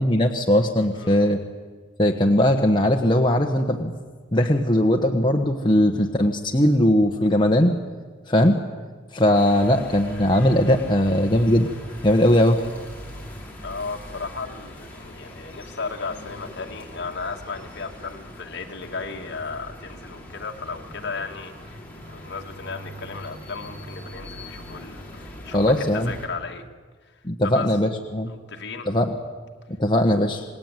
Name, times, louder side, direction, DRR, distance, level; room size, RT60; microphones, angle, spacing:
voice 1, 0.0-1.4 2.0-3.9 4.3-7.7 8.3-8.6 9.1-11.7 12.0-12.6 25.5-26.1 27.2-28.3 28.8-29.1 29.8-30.4, left 1 dB, 25° left, 2 dB, 1.4 m, -19 dB
voice 2, 0.9-1.3 13.6-26.6 27.0-27.2 27.4-27.7 28.3-28.9, left 4 dB, 60° left, 3 dB, 2.3 m, -35 dB
sound 1, 9.3-26.3, left 1 dB, 10° left, 5.2 m, -41 dB
28.0 x 20.0 x 9.3 m, 1.5 s
head